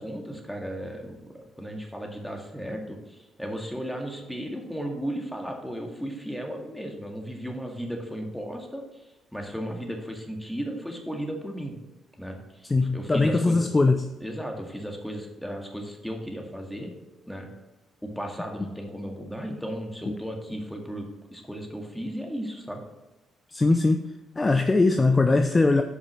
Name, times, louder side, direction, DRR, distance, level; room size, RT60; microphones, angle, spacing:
voice 1, 0.0-11.8 12.2-13.7 14.2-16.9 17.3-17.5 18.0-22.8, equal, 5° left, 2 dB, 2.0 m, -35 dB
voice 2, 12.7-14.0 23.5-24.0 24.4-25.8, left 3 dB, 25° left, 7 dB, 0.6 m, -21 dB
8.3 x 5.4 x 6.1 m, 1.0 s
cardioid pair, 90°, 0 cm